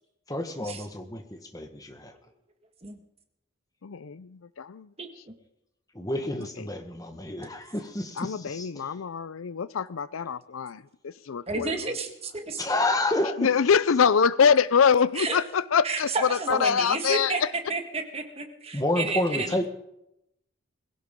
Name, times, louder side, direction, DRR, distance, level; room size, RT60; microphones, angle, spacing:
voice 1, 0.3-2.1 5.9-8.7 12.6-13.5 18.7-19.7, left 1 dB, 15° left, 1.3 m, -29 dB
voice 2, 3.8-4.9 6.6-6.7 8.2-11.9 13.4-17.5, left 6 dB, 85° left, 0.5 m, -24 dB
voice 3, 5.0-5.3 11.5-12.6 15.2-15.4 15.8-17.4 17.7-19.7, right 3 dB, 30° right, 1.6 m, -31 dB
21.5 x 16.0 x 3.7 m
head